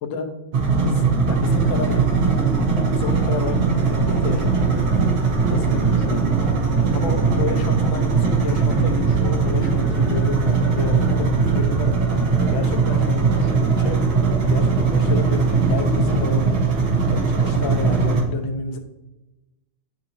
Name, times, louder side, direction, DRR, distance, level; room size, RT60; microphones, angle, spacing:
sound 1, 0.5-18.2, right 5 dB, 90° right, 2.0 m, -20 dB
voice 1, 0.7-2.0 2.8-5.2 5.5-6.3 6.9-14.0 14.4-16.5 17.1-18.8, left 4 dB, 75° left, 5 dB, 1.6 m, -30 dB
sound 2, 1.3-18.2, right 1 dB, 45° right, 0.7 m, -32 dB
11.0 x 4.3 x 2.7 m, 1.0 s
omnidirectional pair, 2.2 m